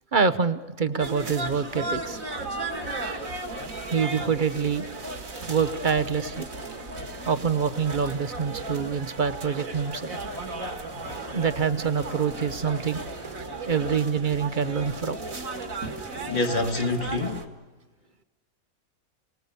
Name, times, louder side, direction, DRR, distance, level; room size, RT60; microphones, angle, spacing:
voice 1, 0.1-2.2 3.9-4.9 5.5-6.5 7.3-10.1 11.3-13.0 13.7-15.2, right 6 dB, 40° right, 0.8 m, -26 dB
sound 1, 1.0-17.5, right 2 dB, 65° right, 2.5 m, -35 dB
voice 2, 16.3-17.4, left 2 dB, 35° left, 1.6 m, -26 dB
28.5 x 19.5 x 6.9 m
omnidirectional pair, 1.5 m